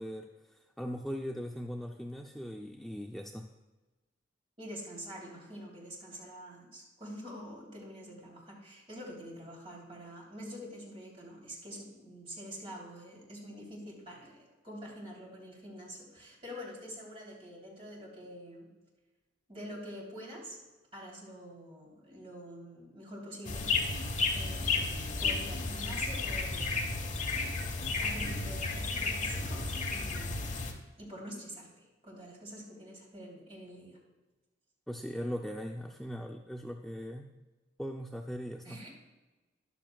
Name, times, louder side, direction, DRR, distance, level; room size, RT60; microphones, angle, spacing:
voice 1, 0.0-3.5 34.9-37.3 37.8-38.8, equal, ahead, 1 dB, 0.4 m, -39 dB
voice 2, 4.6-18.7 19.5-20.6 20.9-23.7 24.3-24.8 25.2-27.0 28.0-30.5 31.0-34.0 38.6-38.9, equal, 30° right, -3 dB, 3.2 m, -46 dB
sound 1, 23.4-30.7, left 3 dB, 40° left, 1.2 m, -33 dB
13.5 x 11.0 x 2.3 m, 1.2 s
head